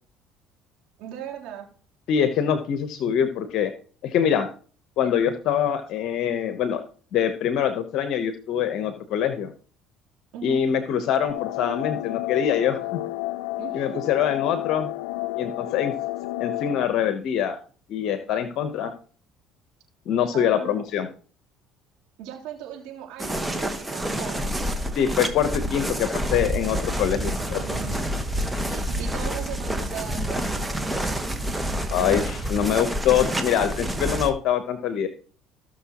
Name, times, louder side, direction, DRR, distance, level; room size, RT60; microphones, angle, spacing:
voice 1, 1.0-1.7 10.3-10.6 13.6-13.8 20.3-20.8 22.2-24.5 27.2-28.0 28.7-30.8, right 8 dB, 75° right, -2 dB, 3.5 m, -38 dB
voice 2, 2.1-3.7 4.0-4.5 5.0-6.8 7.1-9.5 10.4-13.0 13.7-14.9 15.4-15.9 16.4-17.6 17.9-18.9 20.1-21.1 24.9-27.6 31.9-35.1, left 9 dB, 65° left, 9 dB, 1.0 m, -24 dB
sound 1, 11.3-16.9, left 18 dB, 90° left, 0.4 m, -31 dB
sound 2, 23.2-34.3, right 1 dB, 10° right, 1.3 m, -28 dB
16.5 x 6.5 x 3.0 m, 0.42 s
supercardioid pair, 90°, 0 cm